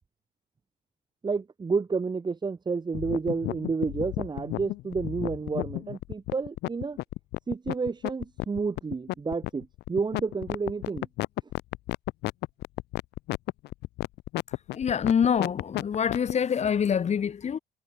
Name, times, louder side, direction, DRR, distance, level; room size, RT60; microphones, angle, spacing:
voice 1, 1.2-7.0 7.5-11.1, right 4 dB, 25° right, 3.0 m, -30 dB
sound 1, 2.9-16.3, left 18 dB, 85° left, 2.9 m, -32 dB
voice 2, 14.7-17.6, left 7 dB, 40° left, 3.7 m, -25 dB
cardioid pair, 110°, 17 cm